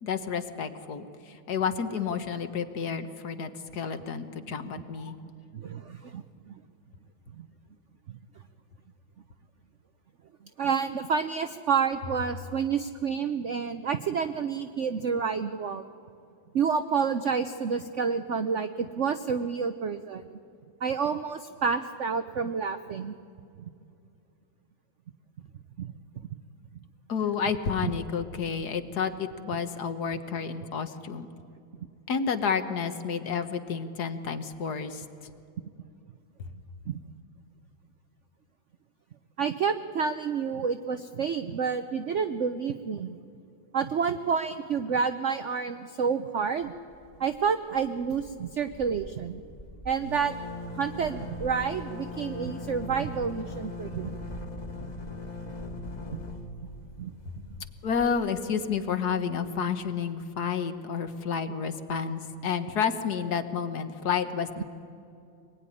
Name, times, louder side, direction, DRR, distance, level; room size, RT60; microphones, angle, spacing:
voice 1, 0.0-5.2 27.1-31.3 32.1-35.0 57.2-57.3 57.8-64.6, left 6 dB, 55° left, 9 dB, 1.6 m, -30 dB
voice 2, 5.5-6.5 7.4-7.5 8.1-8.2 10.6-15.8 16.5-20.2 20.8-23.1 23.6-23.7 25.8-25.9 36.9-37.0 39.4-43.2 43.7-46.7 47.2-49.4 49.8-50.3 50.7-54.2 56.1-56.2 57.0-57.1, right 6 dB, 65° right, 9 dB, 0.7 m, -29 dB
sound 1, 46.9-47.5 47.7-47.9 48.1-58.8, left 2 dB, 20° left, 1.6 m, -40 dB
25.0 x 20.0 x 9.9 m, 2.5 s
omnidirectional pair, 2.2 m